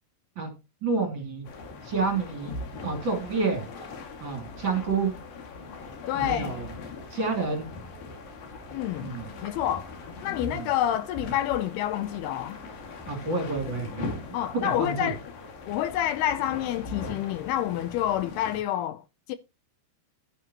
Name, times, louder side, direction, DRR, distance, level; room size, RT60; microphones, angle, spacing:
voice 1, 0.8-1.5 1.8-2.5 2.8-3.6 4.2-5.1 6.2-6.7 7.1-7.7 9.0-9.3 10.4-10.7 13.1-14.2 14.6-15.1, right 4 dB, 30° right, 2.8 m, -29 dB
sound 1, 1.4-18.6, left 3 dB, 60° left, 3.7 m, -40 dB
voice 2, 6.1-6.6 8.7-9.1 9.4-9.9 10.2-12.6 14.3-15.2 15.7-19.0 19.3-19.4, left 12 dB, 80° left, 2.5 m, -28 dB
12.0 x 9.7 x 2.9 m
omnidirectional pair, 4.8 m